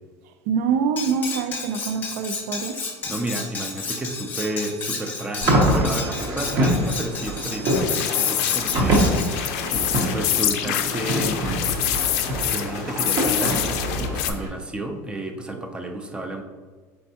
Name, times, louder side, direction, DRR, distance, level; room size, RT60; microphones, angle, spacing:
voice 1, 0.5-2.8, right 6 dB, 80° right, 8 dB, 0.4 m, -25 dB
Cutlery silverware, 1.0-9.3, left 4 dB, 20° left, 0.7 m, -32 dB
voice 2, 3.1-9.1 10.1-11.8 12.4-16.4, right 1 dB, 10° right, 5 dB, 0.4 m, -31 dB
sound 1, 5.4-14.5, right 1 dB, 40° right, 0.8 m, -25 dB
sound 2, 7.7-14.3, left 11 dB, 75° left, 0.4 m, -26 dB
4.4 x 3.2 x 2.8 m, 1.4 s
supercardioid pair, 145°, 8 cm